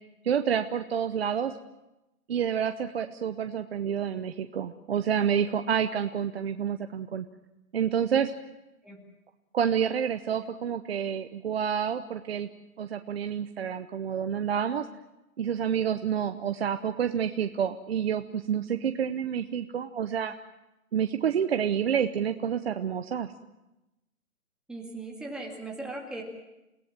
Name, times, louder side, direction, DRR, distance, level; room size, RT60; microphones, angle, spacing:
voice 1, 0.2-1.6 2.3-7.3 7.7-8.3 9.5-12.5 12.8-14.9 15.4-20.3 20.9-23.3, right 8 dB, 45° right, 8 dB, 0.9 m, -28 dB
voice 2, 24.7-26.2, right 2 dB, ahead, -1 dB, 2.2 m, -38 dB
29.5 x 17.5 x 7.5 m, 0.98 s
hypercardioid pair, 160°, 44 cm